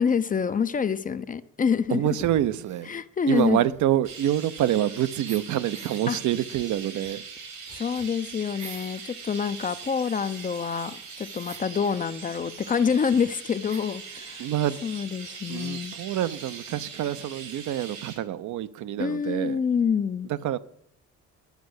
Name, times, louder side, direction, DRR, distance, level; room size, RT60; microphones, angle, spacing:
voice 1, 0.0-2.0 2.9-3.6 6.1-6.2 7.7-14.5 14.8-16.0 19.0-20.3, left 6 dB, 25° left, 13 dB, 0.5 m, -27 dB
voice 2, 1.9-2.9 3.3-7.2 14.4-14.8 15.5-19.6 20.3-20.6, right 12 dB, 65° right, 14 dB, 0.6 m, -26 dB
sound 1, 2.0-2.9 3.3-4.9 5.2-6.0 6.5-9.0 9.4-11.7 12.6-12.7 12.9-13.0 13.7-14.1, right 4 dB, 20° right, 0.8 m, -49 dB
Chirp tweet, 4.0-18.2, right 5 dB, 80° right, 2.8 m, -41 dB
10.5 x 5.2 x 7.9 m, 0.72 s
cardioid pair, 105°, 32 cm